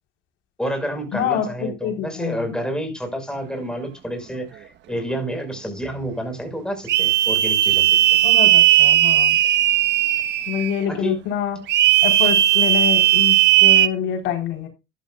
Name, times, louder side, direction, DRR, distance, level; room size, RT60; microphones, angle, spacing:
voice 1, 0.6-8.2 10.9-11.2 12.2-12.3, equal, 5° left, 5.8 m, -29 dB
voice 2, 1.1-2.4 8.2-9.4 10.5-11.6 12.0-14.7, left 8 dB, 80° left, 4.6 m, -26 dB
sound 1, 6.9-10.8 11.7-13.9, right 13 dB, 70° right, 1.4 m, -16 dB
13.5 x 11.5 x 2.5 m
cardioid pair, 105°, 19 cm